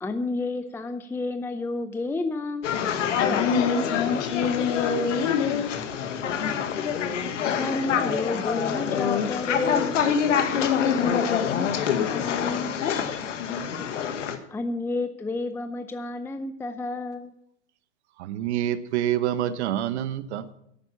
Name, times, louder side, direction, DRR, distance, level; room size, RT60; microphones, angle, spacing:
voice 1, 0.0-2.7 7.6-10.0 14.5-17.3, left 2 dB, 5° left, 0.5 m, -30 dB
sound 1, 2.6-14.4, left 7 dB, 80° left, 1.5 m, -26 dB
voice 2, 3.0-7.1 10.5-12.8, left 6 dB, 60° left, 2.3 m, -28 dB
voice 3, 18.2-20.5, right 11 dB, 65° right, 1.1 m, -27 dB
11.0 x 9.2 x 7.1 m
hypercardioid pair, 110°, 36 cm